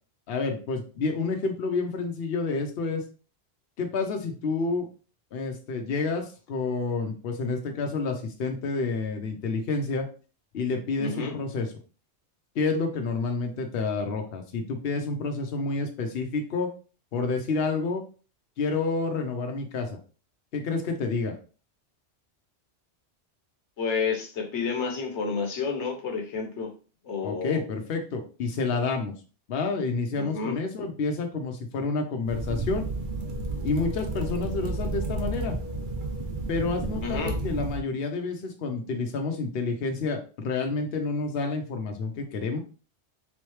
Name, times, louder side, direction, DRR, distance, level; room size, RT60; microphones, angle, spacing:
voice 1, 0.3-3.0 3.8-4.9 5.3-10.1 10.5-11.7 12.6-16.7 17.1-18.0 18.6-20.0 20.5-21.3 27.2-29.1 29.5-32.8 33.6-35.6 36.5-42.6, left 4 dB, 65° left, 3 dB, 0.9 m, -29 dB
voice 2, 11.0-11.3 23.8-26.7 27.0-27.6 30.2-30.6 37.0-37.4, left 5 dB, 85° left, 2 dB, 1.2 m, -30 dB
sound 1, 32.3-37.8, right 2 dB, 50° right, 0.8 m, -32 dB
3.7 x 3.2 x 3.1 m, 0.37 s
omnidirectional pair, 1.1 m